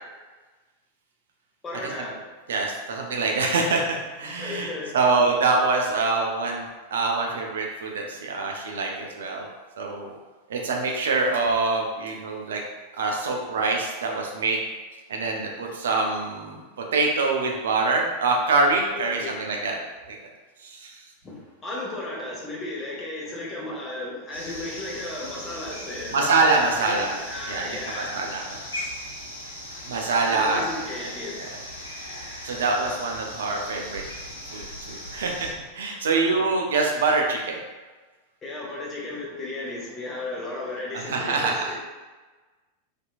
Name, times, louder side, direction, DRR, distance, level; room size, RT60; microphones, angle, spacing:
voice 1, 1.6-2.2 4.2-5.0 18.9-19.4 21.2-26.3 26.6-28.2 30.3-31.6 38.4-41.8, left 2 dB, 20° left, -4 dB, 0.8 m, -34 dB
voice 2, 2.5-6.6 6.9-9.5 9.8-10.2 10.5-12.6 13.0-14.6 15.1-16.6 16.9-19.7 20.1-20.2 20.6-21.0 26.1-27.1 27.5-27.7 28.0-28.6 29.9-30.6 31.0-31.1 32.4-34.0 34.5-35.5 35.7-37.6 41.1-41.6, right 3 dB, 65° right, 0 dB, 0.4 m, -25 dB
sound 1, 24.3-35.5, left 1 dB, 75° left, 0.6 m, -38 dB
2.8 x 2.4 x 2.3 m, 1.3 s
figure-of-eight pair, 90°, 0 cm